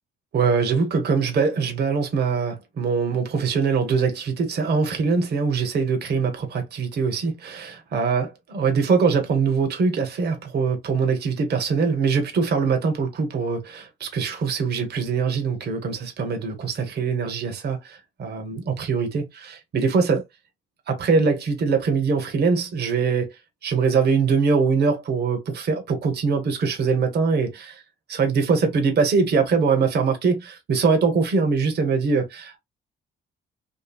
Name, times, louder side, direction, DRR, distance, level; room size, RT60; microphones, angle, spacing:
voice 1, 0.3-8.3 8.5-20.2 20.9-23.4 23.6-27.8 28.1-32.6, right 5 dB, 55° right, 0.9 m, -22 dB
2.7 x 2.6 x 2.3 m
cardioid pair, 90°, 20 cm